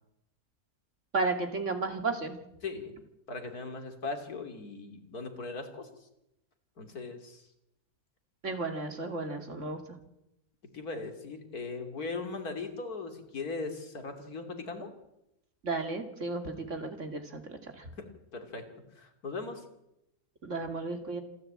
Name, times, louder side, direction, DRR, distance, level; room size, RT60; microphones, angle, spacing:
voice 1, 1.1-2.4 8.4-9.8 15.6-17.9 20.4-21.2, right 3 dB, 55° right, 6 dB, 2.8 m, -33 dB
voice 2, 2.6-2.9 3.3-5.9 6.8-7.4 10.7-14.9 18.0-18.7 19.0-19.6, left 3 dB, 80° left, 6 dB, 3.3 m, -39 dB
27.0 x 13.5 x 8.7 m, 0.87 s
omnidirectional pair, 1.6 m